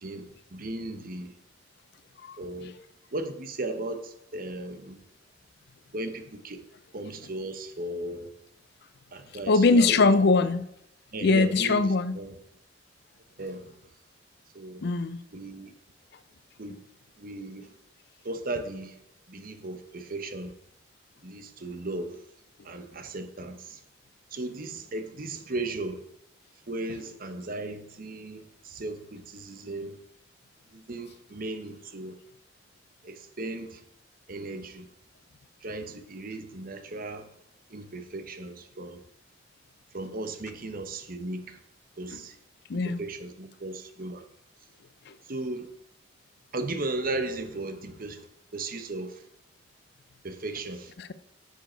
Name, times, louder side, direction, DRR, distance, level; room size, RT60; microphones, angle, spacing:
voice 1, 0.0-1.3 2.4-2.7 3.1-5.0 5.9-6.6 6.9-8.3 9.1-10.2 11.1-12.4 13.4-13.7 14.5-14.8 15.3-15.7 16.6-16.8 17.2-17.7 18.2-19.0 19.3-20.5 21.2-22.2 22.6-23.8 24.3-26.0 26.7-30.0 30.7-32.2 33.0-33.8 34.3-34.9 35.6-37.3 37.7-39.0 39.9-41.6 42.0-42.4 42.7-44.2 45.3-45.7 46.5-48.3 48.5-49.2 50.2-50.9, right 2 dB, 50° right, 1.0 m, -36 dB
voice 2, 9.5-10.7 11.2-12.2 14.8-15.2 42.1-42.2 42.7-43.0 45.1-45.2 51.0-51.1, left 3 dB, 60° left, 0.5 m, -22 dB
10.0 x 6.6 x 4.5 m
head